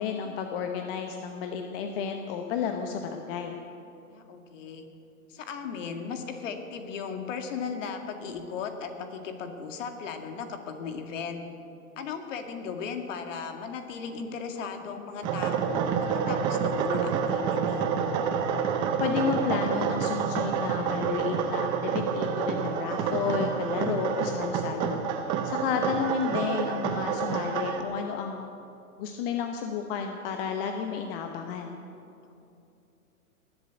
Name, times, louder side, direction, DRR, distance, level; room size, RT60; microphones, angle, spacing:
voice 1, 0.0-3.6 19.0-28.5 29.0-31.8, left 6 dB, 40° left, 4 dB, 1.0 m, -31 dB
voice 2, 4.1-4.9 5.3-11.4 12.0-17.9 32.2-32.3, left 6 dB, 55° left, 5 dB, 2.1 m, -37 dB
sound 1, 15.2-27.8, right 6 dB, 10° right, 0.4 m, -28 dB
20.0 x 7.9 x 8.2 m, 2.7 s
hypercardioid pair, 130°, 44 cm